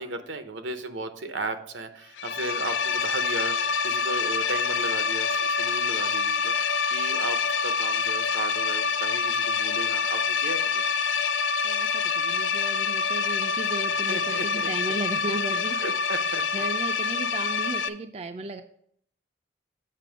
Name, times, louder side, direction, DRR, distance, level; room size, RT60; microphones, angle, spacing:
voice 1, 0.0-10.9 14.1-14.7 15.7-16.4, right 2 dB, 80° right, 9 dB, 0.8 m, -35 dB
sound 1, 2.2-17.9, left 5 dB, 80° left, 0.5 m, -26 dB
voice 2, 11.6-15.8 16.5-18.6, right 2 dB, 35° right, 7 dB, 0.3 m, -35 dB
7.6 x 5.3 x 5.0 m, 0.65 s
head